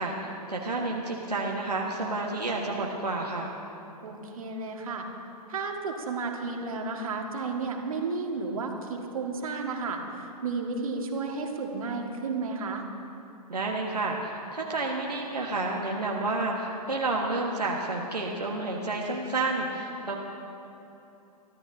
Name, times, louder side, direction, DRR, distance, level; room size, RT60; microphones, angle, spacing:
voice 1, 0.0-3.5 13.5-20.2, right 2 dB, 85° right, -2 dB, 1.5 m, -30 dB
voice 2, 4.0-5.1 5.5-12.8, right 4 dB, 60° right, 2 dB, 1.8 m, -32 dB
24.0 x 13.5 x 2.7 m, 2.9 s
figure-of-eight pair, 115°, 20 cm